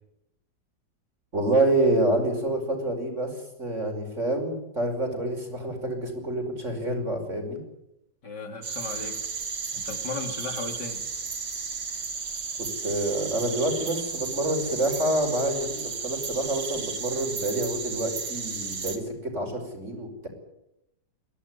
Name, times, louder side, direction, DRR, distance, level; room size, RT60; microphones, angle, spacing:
voice 1, 1.3-7.6 12.6-20.3, right 1 dB, 40° right, 4 dB, 5.8 m, -27 dB
voice 2, 8.2-9.2 9.7-11.0, left 3 dB, 70° left, 4 dB, 4.0 m, -36 dB
sound 1, 8.6-19.0, right 5 dB, 90° right, 2.9 m, -34 dB
23.0 x 17.0 x 9.9 m, 0.86 s
omnidirectional pair, 1.9 m